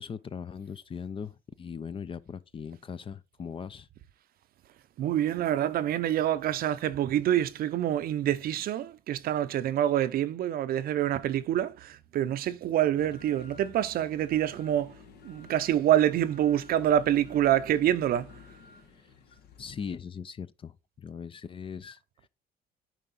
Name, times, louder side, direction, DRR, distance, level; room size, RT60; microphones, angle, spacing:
voice 1, 0.0-3.9 18.9-19.0 19.3-22.3, left 6 dB, 30° left, 0.5 m, -40 dB
voice 2, 5.0-14.9 15.2-18.3, right 11 dB, 60° right, 0.6 m, -26 dB
sound 1, 13.0-20.0, left 5 dB, 70° left, 1.7 m, -51 dB
9.1 x 4.9 x 4.0 m
cardioid pair, 110°, 17 cm